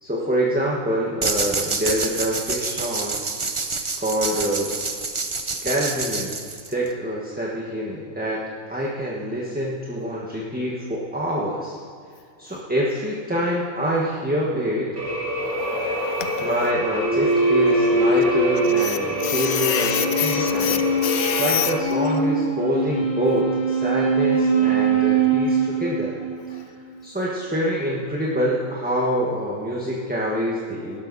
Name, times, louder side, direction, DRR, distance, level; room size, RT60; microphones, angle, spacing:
voice 1, 0.0-3.2 4.0-4.7 5.6-6.3 6.7-8.4 8.7-11.8 12.4-15.0 16.4-20.8 21.4-26.1 26.5-26.6 27.0-31.0, equal, 5° right, -4 dB, 1.4 m, -26 dB
sound 1, 1.2-6.9, right 3 dB, 30° right, 0.7 m, -27 dB
sound 2, 15.0-21.8, right 1 dB, 70° right, 2.2 m, -28 dB
voice 2, 15.4-16.5 18.8-19.0 19.2-21.7, left 9 dB, 70° left, 8 dB, 1.3 m, -27 dB
sound 3, 17.0-26.6, right 3 dB, 55° right, 5.2 m, -22 dB
19.0 x 12.0 x 4.2 m, 2.2 s
omnidirectional pair, 1.6 m